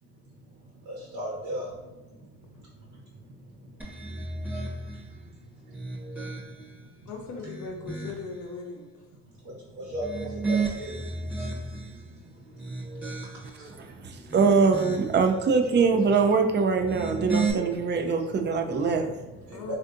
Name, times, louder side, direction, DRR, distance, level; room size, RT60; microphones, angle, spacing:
voice 1, 0.0-7.1 7.8-7.9 9.2-14.3 15.6-16.4 16.7-16.8 17.5-19.8, equal, 75° right, -6 dB, 1.0 m, -41 dB
sound 1, 3.8-5.1 5.6-6.8 7.3-8.4 9.9-12.0 12.5-13.6 14.1-15.2 16.7-17.5, right 4 dB, 5° right, 0.8 m, -33 dB
voice 2, 7.1-8.8 19.5-19.8, left 4 dB, 80° left, 2 dB, 0.7 m, -38 dB
voice 3, 14.0-19.1, right 5 dB, 35° right, 5 dB, 0.4 m, -23 dB
3.4 x 2.5 x 2.5 m, 1.1 s
cardioid pair, 90°, 30 cm